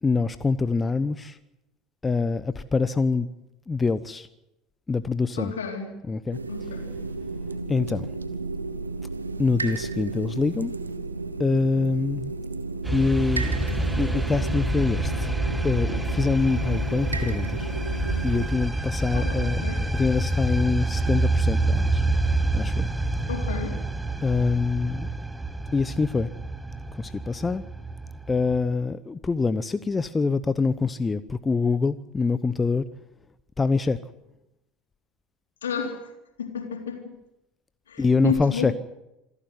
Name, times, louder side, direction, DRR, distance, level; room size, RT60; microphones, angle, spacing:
voice 1, 0.0-1.4 2.0-3.3 3.7-4.3 4.9-5.5 6.1-6.4 7.7-8.1 9.4-10.7 11.4-12.3 12.9-15.3 15.6-17.7 18.2-19.6 19.9-22.0 22.5-22.9 24.2-25.1 25.7-26.3 26.9-27.6 28.3-32.8 33.6-34.0 38.0-38.7, left 4 dB, 20° left, 14 dB, 0.9 m, -25 dB
voice 2, 5.3-5.9 6.5-7.0 19.1-19.8 23.3-23.8 35.6-36.1 36.4-37.1 37.9-38.7, left 6 dB, 75° left, 4 dB, 3.8 m, -31 dB
sound 1, 6.3-18.5, right 3 dB, 85° right, 1.4 m, -33 dB
sound 2, 12.8-28.6, right 2 dB, 5° right, 1.6 m, -27 dB
26.5 x 12.5 x 9.5 m, 0.90 s
figure-of-eight pair, 70°, 0 cm